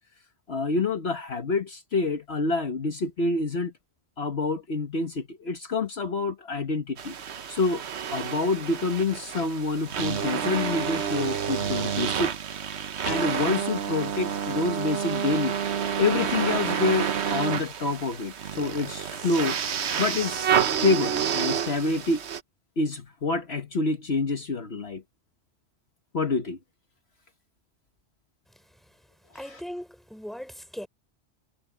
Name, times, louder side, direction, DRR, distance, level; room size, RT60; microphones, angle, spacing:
voice 1, 0.5-3.7 4.2-7.1 7.5-7.8 8.1-12.3 13.0-19.6 20.0-20.5 20.8-22.2 22.8-25.0 26.1-26.6 29.5-29.6, left 3 dB, 60° left, 1.6 m, -27 dB
sound 1, 7.0-22.4, right 8 dB, 65° right, 1.2 m, -29 dB
voice 2, 29.3-30.9, equal, ahead, 3.7 m, -38 dB
omnidirectional pair, 1.2 m